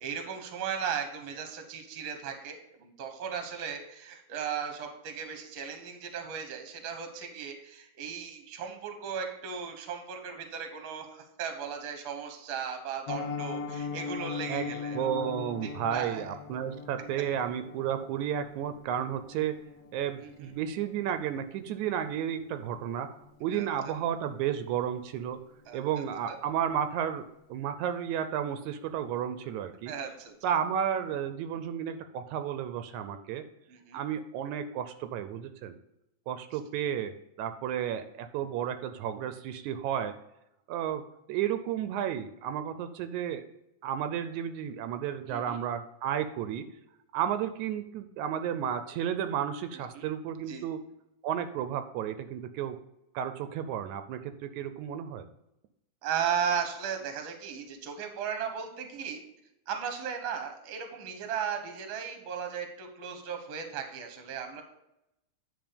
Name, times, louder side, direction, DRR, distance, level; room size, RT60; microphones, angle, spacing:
voice 1, 0.0-15.3 15.6-16.3 16.5-16.6 20.2-20.5 23.5-23.9 25.7-25.8 26.3-26.4 29.9-30.3 33.7-34.0 45.3-45.6 49.9-50.1 50.5-50.7 56.0-59.2 59.7-64.6, right 7 dB, 55° right, 5 dB, 1.6 m, -36 dB
Piano, 13.1-24.0 24.2-24.5 24.8-24.9 25.3-25.5 25.8-25.9, left 5 dB, 75° left, 1.7 m, -41 dB
voice 2, 14.5-19.6 19.9-25.4 25.7-27.3 27.5-29.9 30.4-33.4 33.9-35.8 36.3-37.1 37.4-40.2 40.7-41.0 41.3-43.4 43.8-46.7 47.1-50.8 51.2-52.8 53.1-55.3, right 9 dB, 80° right, 9 dB, 1.9 m, -32 dB
9.5 x 4.2 x 5.1 m, 0.86 s
omnidirectional pair, 3.4 m